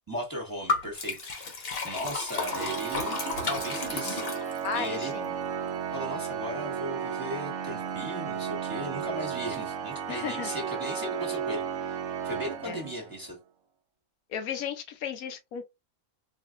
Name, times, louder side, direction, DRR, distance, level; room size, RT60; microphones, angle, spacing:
voice 1, 0.1-3.2 3.5-5.1 5.9-13.4, equal, 15° right, 1.3 m, -37 dB
Liquid, 0.7-4.9, left 4 dB, 45° left, 1.0 m, -33 dB
Organ, 2.3-13.3, right 7 dB, 60° right, 0.9 m, -34 dB
voice 2, 4.6-5.3 10.1-10.5 12.6-12.8 14.3-15.6, left 7 dB, 75° left, 1.0 m, -34 dB
4.3 x 2.6 x 2.3 m
omnidirectional pair, 1.6 m